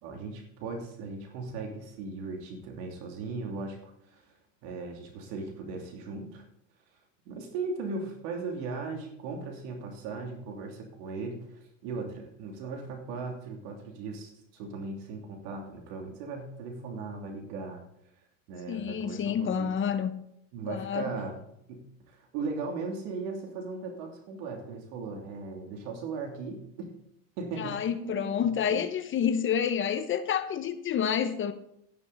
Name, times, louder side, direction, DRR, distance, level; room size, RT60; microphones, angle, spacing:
voice 1, 0.0-4.3 4.6-6.4 7.3-17.8 18.5-19.8 20.5-21.4 21.7-26.9 27.4-28.8, right 4 dB, 65° right, 2.9 m, -38 dB
voice 2, 18.7-20.1 20.7-21.1 27.6-31.5, left 8 dB, 30° left, 0.9 m, -29 dB
12.5 x 11.0 x 4.0 m
supercardioid pair, 115°, 39 cm